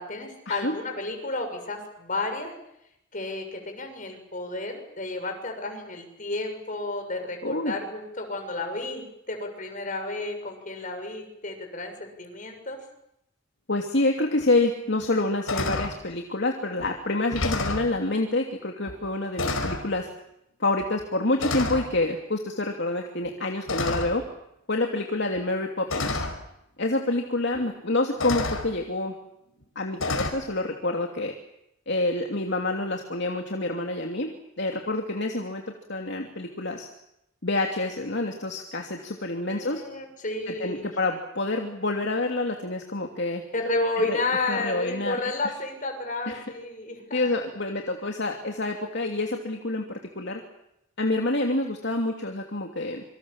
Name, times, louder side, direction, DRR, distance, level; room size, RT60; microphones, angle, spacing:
voice 1, 0.0-2.5 3.1-12.8 39.5-40.9 43.5-47.2, left 2 dB, 40° left, 5 dB, 7.0 m, -31 dB
voice 2, 7.4-7.7 13.7-20.1 20.6-24.2 24.7-26.2 26.8-29.1 29.7-31.3 31.9-34.3 34.6-35.6 35.9-36.9 37.4-39.8 40.5-43.4 44.1-44.2 44.5-45.2 46.3-46.4 47.1-50.4 51.0-53.0, left 2 dB, 55° left, 2 dB, 2.9 m, -27 dB
sound 1, 14.4-14.5 15.0-15.2 15.5-16.0 16.8-16.9 17.2-17.9 18.9-19.0 19.4-19.9 20.8-21.0 21.4-21.9 23.7-24.3 25.4-25.5 25.9-26.4 27.5-27.6 28.2-28.7 30.0-30.3, left 2 dB, 85° left, 5.0 m, -29 dB
27.5 x 25.5 x 7.4 m, 0.82 s
head